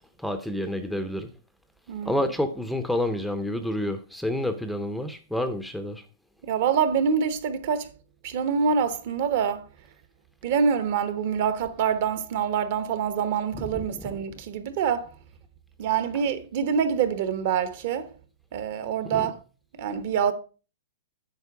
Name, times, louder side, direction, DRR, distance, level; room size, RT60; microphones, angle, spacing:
voice 1, 0.2-1.3 2.1-6.0 19.1-19.2, left 1 dB, ahead, 0.5 m, -28 dB
voice 2, 1.9-2.2 6.4-7.9 8.2-9.7 10.4-15.2 15.8-18.1 18.5-19.4 19.8-20.3, right 7 dB, 50° right, 1.0 m, -26 dB
8.2 x 5.2 x 4.7 m
hypercardioid pair, 150°, 0 cm